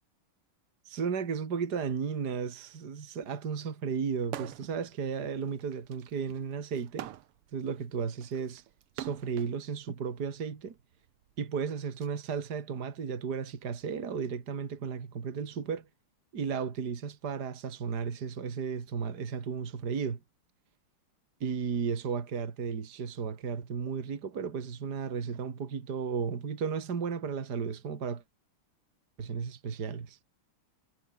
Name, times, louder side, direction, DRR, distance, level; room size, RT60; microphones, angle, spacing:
voice 1, 0.9-7.1 7.5-8.6 9.0-10.8 11.4-15.9 16.3-20.2 21.4-28.2 29.2-30.2, right 6 dB, 50° right, 2.6 m, -34 dB
sound 1, 4.2-4.8 5.2-9.5 10.4-12.1, right 13 dB, 85° right, 1.9 m, -44 dB
omnidirectional pair, 2.4 m